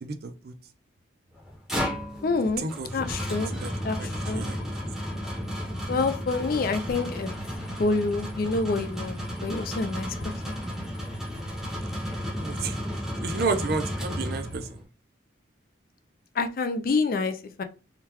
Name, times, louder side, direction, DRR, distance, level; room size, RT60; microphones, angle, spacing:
voice 1, 0.0-0.5 2.6-3.0 3.3-3.7 4.0-4.6 12.4-12.8 13.2-14.7, right 4 dB, 50° right, 0.4 m, -31 dB
sound 1, 1.4-14.8, equal, ahead, 0.7 m, -33 dB
voice 2, 2.2-2.6 2.9-3.5 3.8-4.4 5.9-7.3 7.8-10.6 16.4-17.6, left 3 dB, 45° left, 0.4 m, -27 dB
3.7 x 2.2 x 2.9 m
head